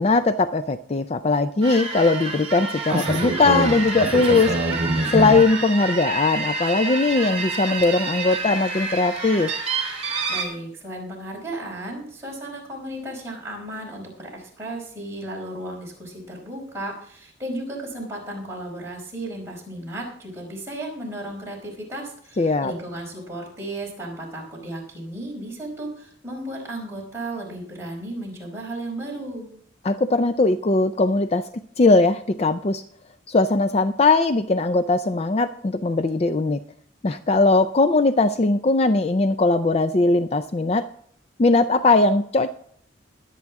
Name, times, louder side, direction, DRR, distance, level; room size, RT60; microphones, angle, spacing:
voice 1, 0.0-4.5 5.1-9.5 22.4-22.7 29.8-31.5 31.8-32.8 33.3-36.6 37.0-40.9 41.4-42.5, left 3 dB, 35° left, 10 dB, 0.4 m, -20 dB
sound 1, 1.6-10.4, right 3 dB, 35° right, 3.4 m, -26 dB
voice 2, 10.3-29.5, right 1 dB, 15° right, -3 dB, 4.8 m, -34 dB
21.0 x 8.4 x 3.6 m, 0.62 s
head